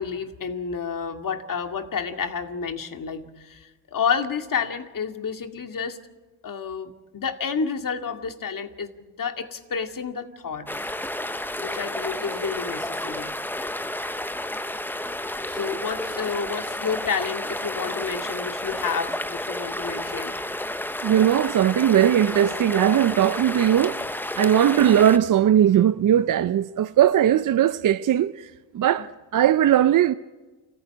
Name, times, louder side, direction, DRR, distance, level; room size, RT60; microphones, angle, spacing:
voice 1, 0.0-6.0 6.4-10.7 11.6-13.3 15.5-20.4, left 6 dB, 40° left, 2.3 m, -30 dB
sound 1, 10.7-25.2, left 1 dB, 5° left, 0.8 m, -31 dB
voice 2, 21.0-24.0 24.4-30.1, right 10 dB, 40° right, 0.6 m, -19 dB
28.5 x 15.0 x 8.6 m
supercardioid pair, 65°, 48 cm